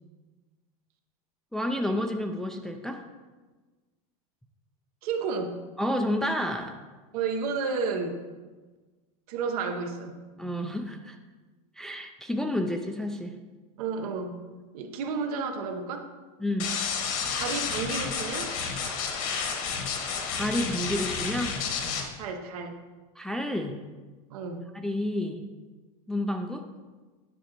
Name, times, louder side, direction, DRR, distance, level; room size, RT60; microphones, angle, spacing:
voice 1, 1.5-3.0 5.8-6.8 10.4-11.2 11.8-13.3 16.4-16.7 20.3-21.6 23.2-23.8 24.7-25.4 26.1-26.6, left 1 dB, ahead, 3 dB, 0.3 m, -30 dB
voice 2, 5.0-5.6 7.1-8.2 9.3-10.5 13.8-14.4 14.7-16.1 17.4-18.6 22.2-22.8 24.3-24.7, right 5 dB, 75° right, 6 dB, 0.9 m, -32 dB
sound 1, 16.6-22.0, left 6 dB, 60° left, 1.3 m, -31 dB
10.0 x 6.2 x 2.9 m, 1.3 s
supercardioid pair, 140°, 19 cm